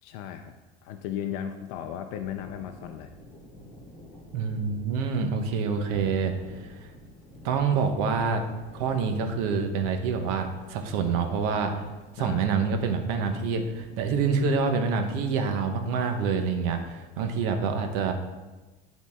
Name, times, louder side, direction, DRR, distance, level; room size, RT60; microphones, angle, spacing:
voice 1, 0.0-0.5 0.8-3.1 12.2-12.4, left 9 dB, 80° left, 6 dB, 0.5 m, -35 dB
sound 1, 2.2-16.9, equal, 10° left, 1.5 m, -49 dB
voice 2, 4.3-6.9 7.4-8.4 8.7-11.7 12.1-18.1, right 5 dB, 75° right, 5 dB, 1.0 m, -27 dB
11.0 x 4.1 x 3.6 m, 1.2 s
cardioid pair, 180°, 19 cm